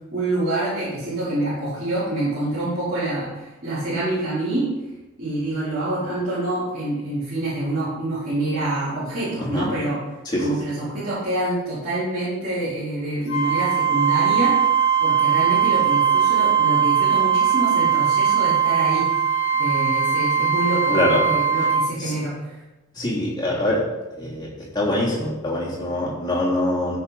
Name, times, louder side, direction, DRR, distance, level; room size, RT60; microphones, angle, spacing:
voice 1, 0.1-4.7 5.2-10.0 10.4-14.6 15.0-19.1 19.6-22.3, right 2 dB, 40° right, -13 dB, 4.4 m, -26 dB
Wind instrument woodwind instrument, 13.3-21.9, right 7 dB, 65° left, 1.7 m, -20 dB
voice 2, 20.9-21.2 22.0-22.1 23.0-23.8 24.2-24.5 24.7-27.0, left 1 dB, 20° left, -5 dB, 3.1 m, -23 dB
14.5 x 6.7 x 4.2 m, 1.1 s
head